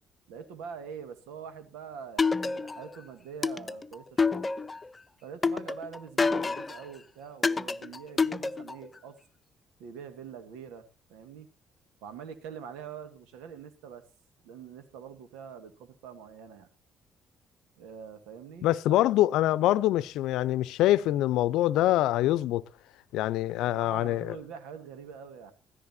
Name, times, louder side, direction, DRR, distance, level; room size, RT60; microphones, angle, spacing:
voice 1, 0.3-4.4 5.2-9.2 9.8-11.5 12.0-14.1 14.4-16.7 17.8-19.0 23.7-25.5, right 7 dB, 80° right, 1.8 m, -44 dB
sound 1, 2.2-2.9 3.4-4.9 5.4-6.8 7.4-8.9, left 4 dB, 30° left, 0.8 m, -28 dB
voice 2, 18.6-22.6 23.1-24.4, left 14 dB, 75° left, 0.6 m, -25 dB
16.5 x 14.0 x 2.8 m
hypercardioid pair, 55°, 0 cm